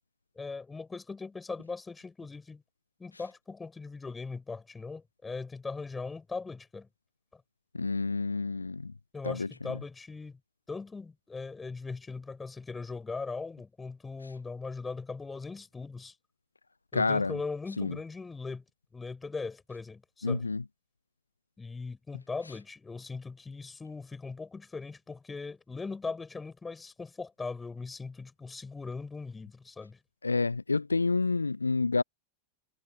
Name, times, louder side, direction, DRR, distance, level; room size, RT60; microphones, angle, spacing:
voice 1, 0.3-2.6 3.0-6.9 9.1-10.4 10.7-16.1 16.9-18.6 18.9-20.4 21.6-30.0, left 4 dB, 10° left, 6.8 m, -39 dB
voice 2, 7.7-8.9 9.2-9.8 16.9-17.4 17.8-18.0 20.2-20.6 30.2-32.0, left 3 dB, 80° left, 0.6 m, -29 dB
figure-of-eight pair, 90°, 0 cm